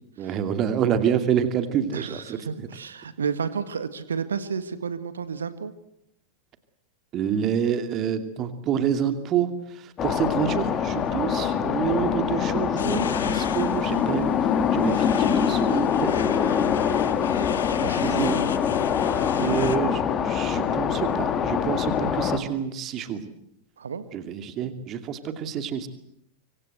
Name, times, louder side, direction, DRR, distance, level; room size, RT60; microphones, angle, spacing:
voice 1, 0.2-2.7 7.1-14.3 14.7-16.1 17.9-18.3 19.4-23.3 24.1-25.9, right 8 dB, 35° right, 9 dB, 2.5 m, -27 dB
voice 2, 1.9-5.7 17.7-18.5 19.3-20.0 23.8-24.0, right 6 dB, 70° right, 13 dB, 1.7 m, -32 dB
sound 1, 10.0-22.4, left 7 dB, 30° left, 2.8 m, -24 dB
sound 2, 12.8-19.8, left 8 dB, 65° left, 1.5 m, -37 dB
25.5 x 25.0 x 8.0 m, 0.78 s
figure-of-eight pair, 90°, 0 cm